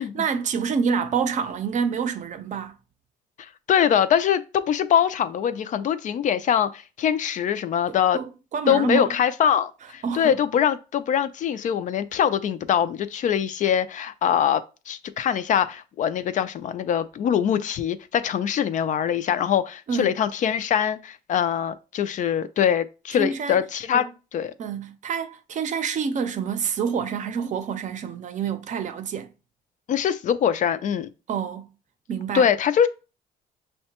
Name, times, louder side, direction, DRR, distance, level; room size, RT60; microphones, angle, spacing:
voice 1, 0.0-2.8 7.9-9.2 10.0-10.4 19.9-20.2 23.2-23.6 23.9-24.1 24.6-29.3 31.3-31.7 32.1-32.5, right 6 dB, 45° right, 0.6 m, -27 dB
voice 2, 3.4-8.2 8.7-24.0 24.3-24.5 29.9-31.1 32.3-32.9, left 9 dB, 50° left, 0.4 m, -23 dB
6.2 x 2.2 x 2.9 m
cardioid pair, 110°, 17 cm